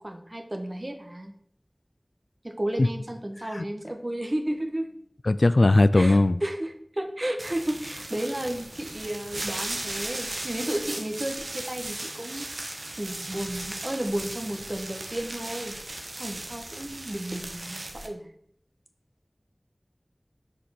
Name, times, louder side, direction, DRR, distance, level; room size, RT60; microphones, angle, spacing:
voice 1, 0.0-1.4 2.4-4.9 5.9-15.7 16.2-18.3, right 1 dB, 40° right, 1.5 m, -33 dB
voice 2, 5.3-6.4, left 2 dB, 85° left, 0.3 m, -19 dB
sound 1, 7.4-18.1, right 2 dB, 90° right, 1.1 m, -37 dB
6.5 x 5.1 x 6.5 m
wide cardioid pair, 40°, 0 cm